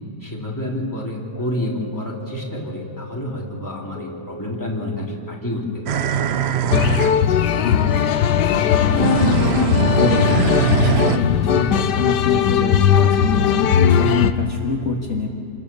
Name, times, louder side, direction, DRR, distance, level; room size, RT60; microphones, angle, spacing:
voice 1, 0.2-6.0, left 1 dB, 10° left, -3 dB, 3.2 m, -29 dB
sound 1, 1.3-11.7 12.2-12.3, left 2 dB, 60° left, 2.3 m, -41 dB
sound 2, 5.9-7.2 8.9-11.2, right 8 dB, 65° right, 0.6 m, -21 dB
sound 3, 6.7-14.3, left 8 dB, 85° left, 1.4 m, -18 dB
voice 2, 7.6-8.0 8.3-9.4 9.9-15.3, left 4 dB, 45° left, -1 dB, 2.0 m, -25 dB
27.5 x 19.5 x 7.0 m, 2.5 s
omnidirectional pair, 1.8 m